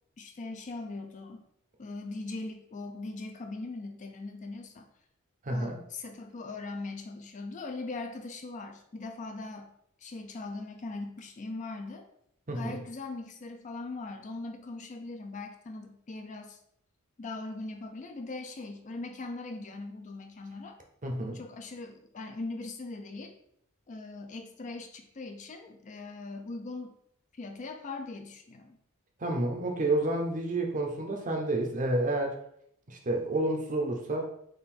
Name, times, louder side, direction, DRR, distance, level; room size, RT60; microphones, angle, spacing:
voice 1, 0.2-1.5 1.8-4.9 5.5-9.7 10.0-12.1 12.5-16.6 17.2-20.8 21.3-23.3 23.9-26.9 27.3-28.8, left 3 dB, 35° left, 4 dB, 0.4 m, -40 dB
voice 2, 5.4-5.8 12.5-12.8 21.0-21.4 29.2-32.4 32.9-34.3, right 2 dB, 35° right, 2 dB, 0.7 m, -29 dB
3.7 x 2.5 x 4.2 m, 0.70 s
head